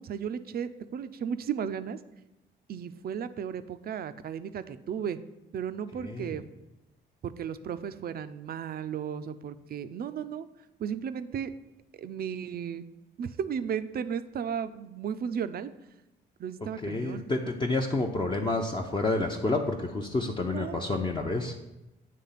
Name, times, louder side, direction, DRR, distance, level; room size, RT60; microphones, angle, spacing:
voice 1, 0.0-2.0 2.7-5.2 5.5-6.5 7.2-10.5 10.8-11.5 11.9-12.9 13.2-15.7 16.4-17.2 20.4-20.8, right 8 dB, 50° right, 12 dB, 0.5 m, -34 dB
voice 2, 6.0-6.3 16.8-21.5, left 2 dB, 25° left, 1 dB, 0.6 m, -29 dB
8.4 x 3.3 x 5.7 m, 0.96 s
cardioid pair, 90°, 20 cm